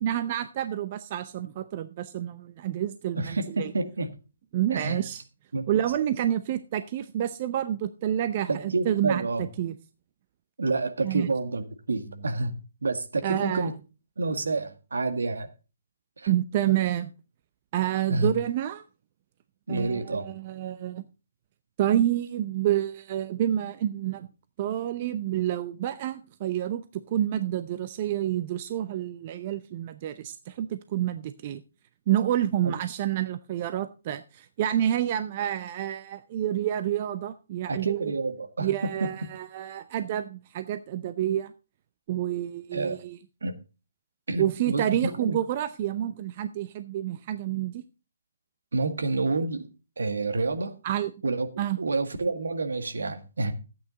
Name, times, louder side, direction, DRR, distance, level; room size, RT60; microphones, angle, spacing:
voice 1, 0.0-3.7 4.5-5.2 5.7-9.8 11.0-11.3 13.2-13.7 16.3-17.1 17.7-18.8 19.7-21.0 21.8-24.3 24.6-31.6 32.1-38.1 38.6-41.5 42.1-43.2 44.4-47.8 50.8-51.1 51.6-51.8, right 11 dB, 35° right, 0.7 m, -28 dB
voice 2, 3.2-4.1 4.7-5.0 5.5-5.7 8.5-9.5 10.6-13.7 14.2-15.5 16.2-16.3 18.1-18.3 19.7-20.3 32.6-32.8 37.7-38.7 39.0-39.1 42.7-43.0 43.4-43.6 44.3-45.4 48.7-49.7 50.0-50.7 51.2-51.5 51.8-53.5, right 3 dB, 70° right, 1.8 m, -29 dB
13.0 x 8.8 x 3.9 m
figure-of-eight pair, 140°, 0 cm